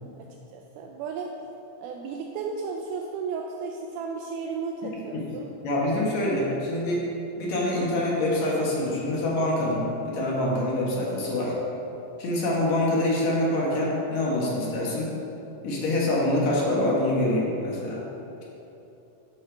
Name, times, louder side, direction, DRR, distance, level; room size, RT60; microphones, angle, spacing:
voice 1, 0.2-1.3 1.8-5.5, right 5 dB, 85° right, 1 dB, 1.8 m, -34 dB
voice 2, 5.6-7.1 7.4-11.6 12.2-15.1 15.6-18.0, left 1 dB, 60° left, -4 dB, 2.3 m, -25 dB
12.0 x 5.4 x 3.4 m, 2.9 s
omnidirectional pair, 4.2 m